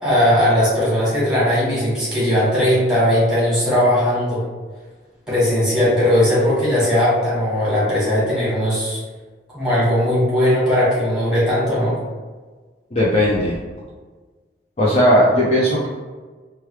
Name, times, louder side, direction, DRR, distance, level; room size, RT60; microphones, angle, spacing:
voice 1, 0.0-4.4 5.3-9.0 9.5-12.0, left 1 dB, 5° right, -10 dB, 1.5 m, -18 dB
voice 2, 12.9-13.6 14.8-15.9, equal, 35° left, -5 dB, 0.4 m, -16 dB
3.2 x 2.3 x 3.1 m, 1.4 s
head